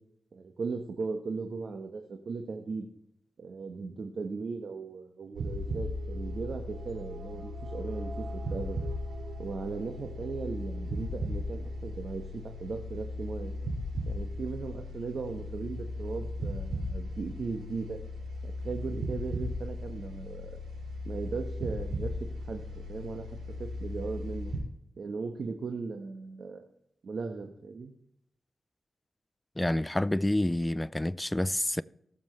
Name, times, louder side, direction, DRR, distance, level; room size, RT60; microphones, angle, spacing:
voice 1, 0.3-2.9 3.4-8.8 9.4-13.5 14.1-18.0 18.4-20.6 21.0-22.2 22.5-24.5 25.0-26.6 27.0-27.9, right 4 dB, 65° right, 1.2 m, -37 dB
sound 1, 5.3-24.6, left 1 dB, 90° right, 5.2 m, -37 dB
voice 2, 29.6-31.8, left 1 dB, 15° left, 0.5 m, -28 dB
19.5 x 7.2 x 3.3 m
cardioid pair, 50°, 0 cm